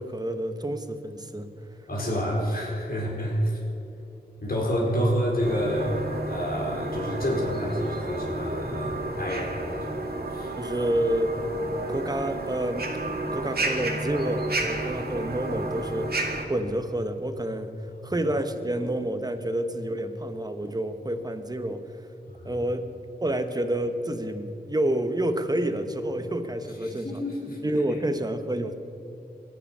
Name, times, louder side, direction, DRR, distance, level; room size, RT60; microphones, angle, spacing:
voice 1, 0.0-1.5 10.6-11.4 11.9-12.9 13.3-22.1 22.4-22.8 23.2-27.2 27.6-28.8, right 1 dB, 20° right, 8 dB, 1.3 m, -29 dB
voice 2, 1.9-3.6 4.4-10.0 10.3-10.5 18.0-18.1 22.3-22.6 26.8-27.6, equal, 55° left, -3 dB, 4.6 m, -28 dB
sound 1, 5.4-16.5, right 2 dB, 65° right, 2.0 m, -31 dB
24.0 x 10.0 x 5.7 m, 2.9 s
wide cardioid pair, 75°, 18 cm